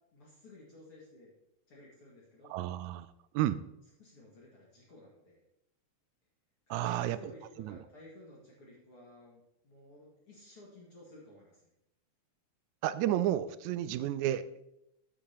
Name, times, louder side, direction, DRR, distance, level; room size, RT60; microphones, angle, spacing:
voice 1, 0.1-1.3 1.7-2.6 4.0-5.4 6.7-11.6, left 1 dB, 50° left, -5 dB, 2.6 m, -55 dB
voice 2, 2.5-3.1 3.3-3.6 6.7-7.2 7.6-7.8 12.8-14.6, right 12 dB, 80° right, 14 dB, 1.8 m, -31 dB
15.0 x 8.6 x 2.9 m, 0.84 s
omnidirectional pair, 3.5 m